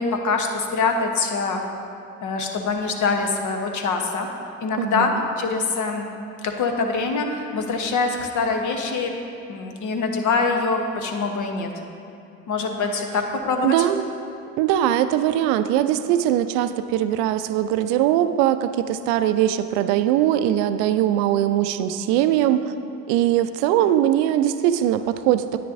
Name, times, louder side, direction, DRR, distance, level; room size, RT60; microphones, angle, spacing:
voice 1, 0.0-1.6 2.2-4.3 4.6-6.1 6.4-9.1 9.5-11.7 12.5-13.9, left 4 dB, 45° left, 3 dB, 1.1 m, -24 dB
voice 2, 4.8-5.2 13.6-14.1 14.6-22.6 23.1-25.6, right 11 dB, 60° right, 11 dB, 0.6 m, -21 dB
9.9 x 9.2 x 2.7 m, 2.6 s
hypercardioid pair, 65°, 40 cm